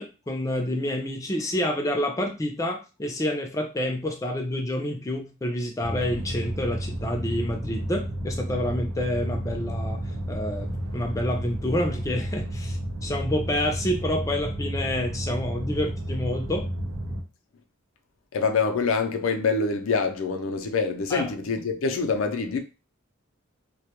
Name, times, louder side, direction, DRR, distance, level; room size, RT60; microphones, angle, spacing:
voice 1, 0.0-10.0 10.3-16.7 21.1-21.3, left 1 dB, 15° left, 0.4 m, -28 dB
sound 1, 5.8-17.2, right 1 dB, 90° right, 0.5 m, -31 dB
voice 2, 18.3-22.6, left 4 dB, 85° left, 0.4 m, -25 dB
2.1 x 2.1 x 2.8 m
head